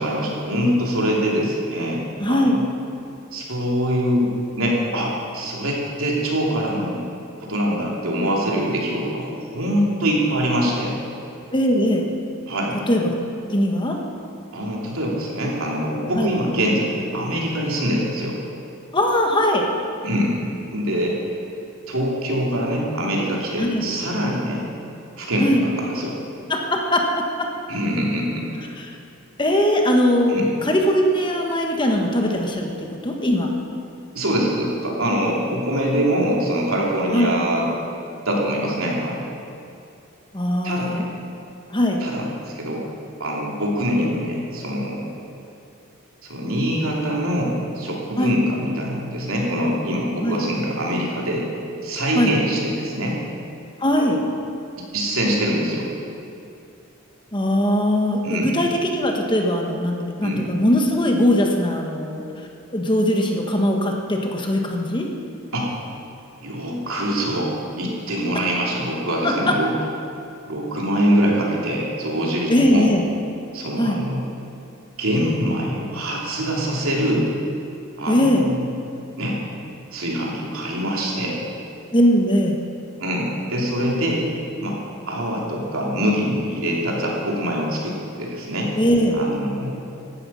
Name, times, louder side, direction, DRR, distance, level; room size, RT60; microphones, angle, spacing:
voice 1, 0.0-2.6 3.3-7.0 7.4-11.0 12.5-12.8 14.5-18.4 20.0-20.3 20.7-21.2 21.9-24.7 25.2-26.2 27.7-28.5 30.3-30.5 34.1-37.7 38.2-39.3 40.6-41.0 42.0-42.3 42.5-42.8 43.2-45.1 46.2-51.5 51.8-53.2 54.9-55.9 58.2-58.5 60.2-60.4 65.5-65.7 66.4-69.7 70.4-72.9 73.5-74.2 75.0-77.3 78.0-78.6 79.2-79.4 79.9-81.4 83.0-84.2 84.6-84.8 85.1-88.7 89.1-89.9, equal, 80° right, -2 dB, 3.1 m, -24 dB
voice 2, 2.2-2.6 11.5-12.1 12.9-13.1 13.4-14.0 16.1-16.3 18.9-19.7 23.6-23.9 25.4-25.6 26.5-27.2 28.8-29.0 29.4-33.5 37.1-37.3 40.3-41.0 41.7-42.0 48.2-48.3 50.2-50.4 52.1-52.3 53.8-54.2 57.3-65.1 69.2-69.6 72.5-73.0 73.8-74.0 78.1-78.5 81.9-82.6 88.8-89.2, left 1 dB, 20° left, 1 dB, 1.4 m, -20 dB
16.0 x 12.5 x 5.7 m, 2.6 s
head